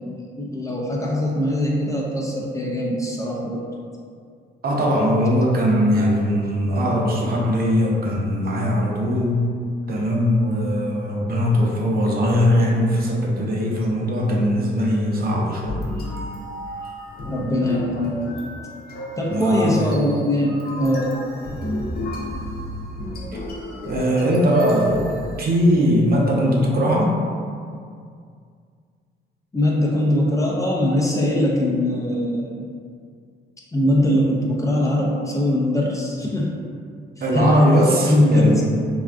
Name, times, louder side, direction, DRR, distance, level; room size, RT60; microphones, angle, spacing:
voice 1, 0.0-3.6 17.3-18.2 19.2-21.1 29.5-32.7 33.7-36.6 37.2-38.6, left 1 dB, 15° left, -3 dB, 0.4 m, -21 dB
voice 2, 4.6-9.5 9.9-15.8 19.3-19.8 23.3-23.4 23.9-25.0 25.4-27.2 37.2-38.6, equal, 50° right, -2 dB, 0.6 m, -20 dB
sound 1, 15.6-26.0, left 1 dB, 50° left, 0.7 m, -33 dB
3.3 x 2.3 x 2.4 m, 2.2 s
cardioid pair, 90°, 20 cm